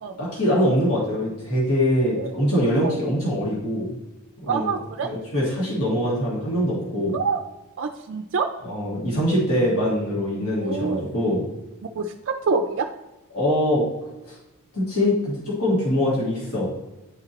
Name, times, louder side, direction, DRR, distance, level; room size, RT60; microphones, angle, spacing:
voice 1, 0.2-4.0 4.4-4.7 5.0-7.2 8.6-11.4 13.3-13.8 14.3-14.4 14.7-16.8, equal, 80° left, -5 dB, 1.7 m, -23 dB
voice 2, 4.5-5.1 7.1-7.4 7.8-8.5 10.6-11.1 11.9-12.9, right 4 dB, 55° right, 5 dB, 0.4 m, -26 dB
9.6 x 3.9 x 2.9 m, 1.0 s
head